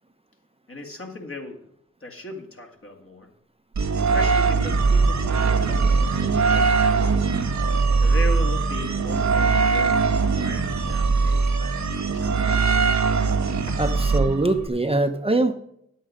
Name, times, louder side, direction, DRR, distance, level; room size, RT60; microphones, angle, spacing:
voice 1, 0.7-1.7 2.0-3.3 4.0-7.2 8.0-10.1 10.4-12.8 13.7-13.8, left 1 dB, 50° left, 1 dB, 2.3 m, -38 dB
sound 1, 3.8-14.7, right 4 dB, 70° right, 0.9 m, -21 dB
voice 2, 13.8-15.5, right 2 dB, 20° right, 7 dB, 0.8 m, -22 dB
9.2 x 8.4 x 5.1 m, 0.74 s
cardioid pair, 50°, 29 cm